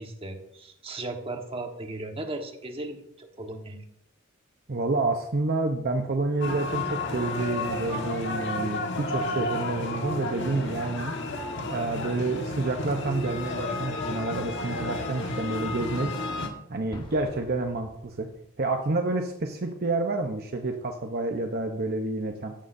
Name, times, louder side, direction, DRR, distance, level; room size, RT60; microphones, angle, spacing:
voice 1, 0.0-3.8, right 2 dB, 30° right, 3 dB, 1.4 m, -37 dB
voice 2, 4.7-11.1 11.7-16.1 16.7-18.3 18.6-22.5, right 2 dB, 50° right, 4 dB, 0.8 m, -29 dB
sound 1, 6.4-16.5, left 2 dB, 60° left, 1.6 m, -32 dB
Explosion, 16.9-18.6, left 1 dB, 25° left, 1.2 m, -46 dB
15.0 x 11.5 x 2.7 m, 0.78 s
head